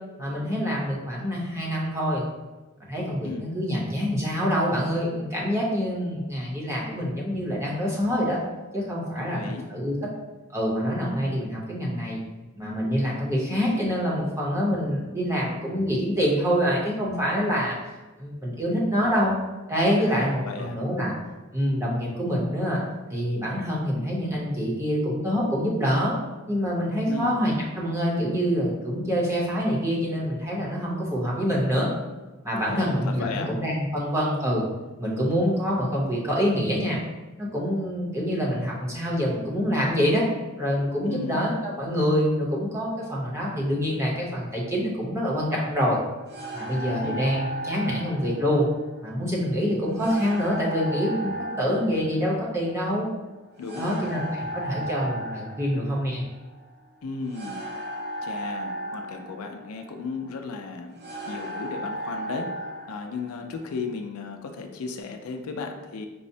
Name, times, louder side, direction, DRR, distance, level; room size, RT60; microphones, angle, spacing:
voice 1, 0.2-2.3 2.9-8.4 8.7-9.4 9.7-9.9 10.5-12.2 12.6-17.8 18.2-19.3 19.7-21.1 21.5-22.8 23.1-26.2 26.5-31.9 32.4-34.6 35.0-37.0 37.4-40.2 40.6-46.0 46.5-48.7 49.0-53.1 53.8-54.3 54.5-56.2, equal, 15° right, -4 dB, 0.7 m, -26 dB
voice 2, 9.2-9.7 20.0-20.8 27.0-27.4 32.6-33.5 41.0-41.4 47.0-47.3 53.6-54.2 57.0-57.6 58.2-60.9 61.3-62.5 62.9-66.1, left 4 dB, 90° left, 5 dB, 0.4 m, -35 dB
sound 1, 46.3-64.0, right 1 dB, 50° right, 0.6 m, -36 dB
5.3 x 2.0 x 2.6 m, 1.2 s
head